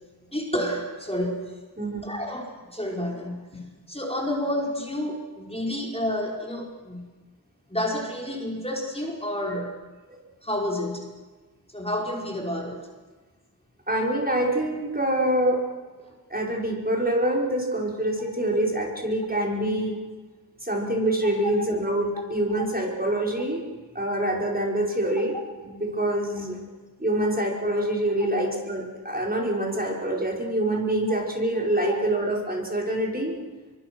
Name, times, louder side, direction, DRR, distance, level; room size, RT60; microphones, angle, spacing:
voice 1, 0.3-1.6 2.0-7.1 7.7-9.8 10.4-11.1 11.7-12.9 22.5-22.6 31.9-32.0, left 1 dB, 15° left, -1 dB, 5.2 m, -30 dB
voice 2, 13.9-15.6 16.3-20.0 20.6-23.6 23.9-25.3 25.6-26.6 27.0-33.3, right 1 dB, 25° right, -2 dB, 5.5 m, -25 dB
26.5 x 24.0 x 6.3 m, 1.3 s
wide cardioid pair, 45°, 38 cm